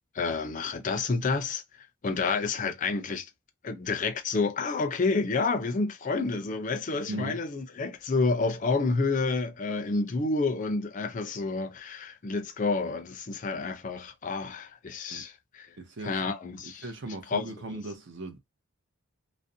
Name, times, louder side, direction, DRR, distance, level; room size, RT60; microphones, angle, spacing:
voice 1, 0.1-1.6 2.0-3.3 3.6-15.7 16.0-17.8, left 3 dB, 35° left, 0.4 m, -29 dB
voice 2, 7.0-7.4 15.1-15.2 15.8-16.2 16.8-18.4, right 2 dB, 55° right, 0.6 m, -38 dB
2.4 x 2.0 x 2.6 m
head